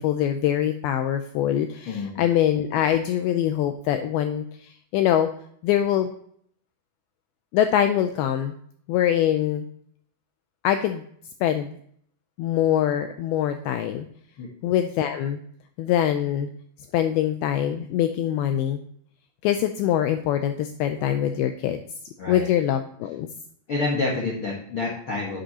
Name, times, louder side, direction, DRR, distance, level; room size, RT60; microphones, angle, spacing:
voice 1, 0.0-5.3 5.6-6.1 7.5-8.5 8.9-9.7 10.6-11.0 11.4-11.8 12.4-14.1 14.6-15.4 15.8-16.5 16.9-18.8 19.4-21.8 22.3-23.3, left 10 dB, 85° left, 8 dB, 2.2 m, -23 dB
voice 2, 1.9-2.2 14.4-14.5 22.2-22.5 23.7-25.4, left 3 dB, 70° left, -3 dB, 1.2 m, -28 dB
9.9 x 7.8 x 2.8 m, 0.64 s
omnidirectional pair, 4.9 m